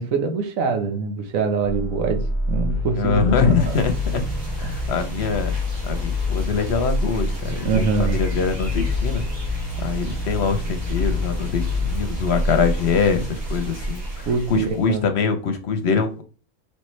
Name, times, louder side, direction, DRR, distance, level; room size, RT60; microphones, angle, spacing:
voice 1, 0.0-3.8 4.6-4.8 7.6-8.2 14.3-15.0, right 5 dB, 85° right, 6 dB, 1.3 m, -24 dB
sound 1, 1.6-13.0, left 3 dB, 15° left, 0.6 m, -27 dB
voice 2, 3.0-4.2 4.6-5.5 5.9-9.3 9.8-16.2, left 5 dB, 60° left, 7 dB, 0.9 m, -23 dB
sound 2, 3.6-15.0, right 1 dB, 65° right, 2.0 m, -31 dB
4.4 x 3.3 x 3.1 m, 0.36 s
omnidirectional pair, 1.4 m